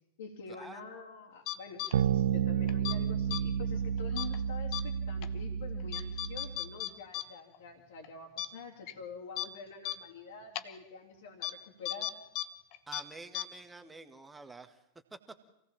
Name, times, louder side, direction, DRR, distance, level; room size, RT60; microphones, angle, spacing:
voice 1, 0.2-12.2, left 5 dB, 60° left, -3 dB, 3.3 m, -47 dB
sound 1, 1.5-1.9 2.7-3.0 3.3-3.4 4.2-4.4 4.7-4.8 5.2-5.3 5.9-7.2 7.5-7.6 8.0-8.1 8.4-8.5 8.9-9.0 9.4-9.5 9.8-10.0 10.6-10.7 11.4-11.5 11.9-12.5 12.7-13.0 13.3-13.4, left 14 dB, 40° left, 1.1 m, -35 dB
sound 2, 1.9-6.7, right 8 dB, 60° right, 0.7 m, -31 dB
voice 2, 12.9-14.8 15.1-15.4, right 3 dB, 10° right, 8 dB, 1.9 m, -48 dB
27.0 x 18.0 x 7.4 m, 0.89 s
figure-of-eight pair, 90°, 0 cm